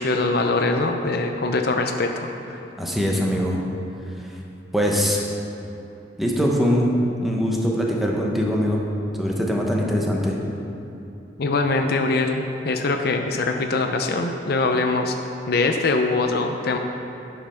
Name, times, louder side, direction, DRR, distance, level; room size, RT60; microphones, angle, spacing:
voice 1, 0.0-2.6 11.4-15.1 15.5-16.8, left 3 dB, 55° left, 4 dB, 0.6 m, -23 dB
voice 2, 2.8-3.6 4.7-5.2 6.2-6.9 7.2-8.9 9.2-10.4, equal, ahead, -2 dB, 1.0 m, -22 dB
10.5 x 5.5 x 5.7 m, 2.9 s
head